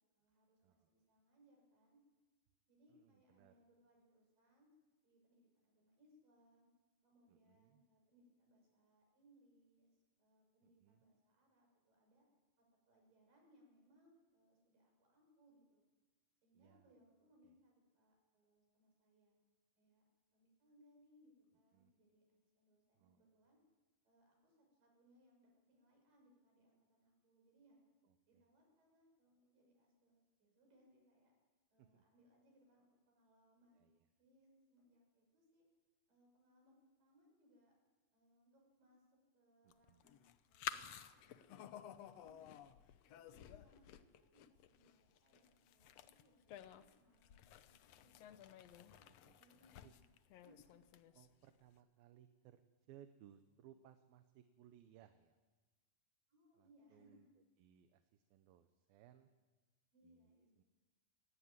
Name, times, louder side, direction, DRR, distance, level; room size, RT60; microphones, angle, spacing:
voice 1, 0.1-2.0 2.7-4.7 5.0-6.7 7.0-9.9 10.2-12.3 12.6-15.8 16.4-19.3 19.8-20.0 20.3-23.6 24.0-27.9 28.3-31.3 31.7-33.9 34.2-35.7 36.1-37.7 38.1-39.0 39.3-42.6 43.1-48.3 49.4-50.8 56.3-57.3 59.9-60.6, equal, 65° right, 0 dB, 8.0 m, -72 dB
voice 2, 2.9-3.5 7.3-7.8 10.6-11.0 16.5-16.9 17.4-17.5 21.7-21.9 23.0-23.2 28.0-28.4 31.8-32.0 33.7-34.1 39.6-40.1 48.5-49.4 49.8-49.9 51.1-52.6 52.9-55.4 56.6-57.3 57.6-59.3 60.0-60.3 60.6-60.7, right 10 dB, 80° right, 9 dB, 2.8 m, -65 dB
sound 1, 39.7-51.5, left 10 dB, 85° left, 1.4 m, -53 dB
22.0 x 17.0 x 9.6 m, 1.3 s
omnidirectional pair, 4.2 m